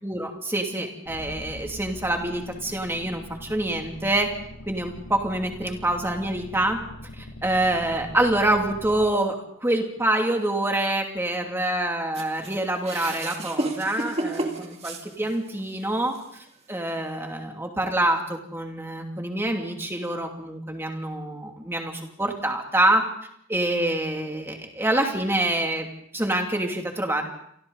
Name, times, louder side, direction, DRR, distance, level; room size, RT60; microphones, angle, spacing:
voice 1, 0.0-4.3 4.7-6.8 7.2-9.3 9.6-16.1 16.7-23.0 23.5-25.9 26.1-27.2, right 1 dB, 10° right, 2 dB, 2.6 m, -26 dB
sound 1, 1.1-9.1, left 1 dB, 60° left, 6.8 m, -42 dB
sound 2, 12.1-15.6 16.1-16.2 17.2-17.3, right 1 dB, 30° right, 2.3 m, -31 dB
28.5 x 23.5 x 4.1 m, 0.71 s
head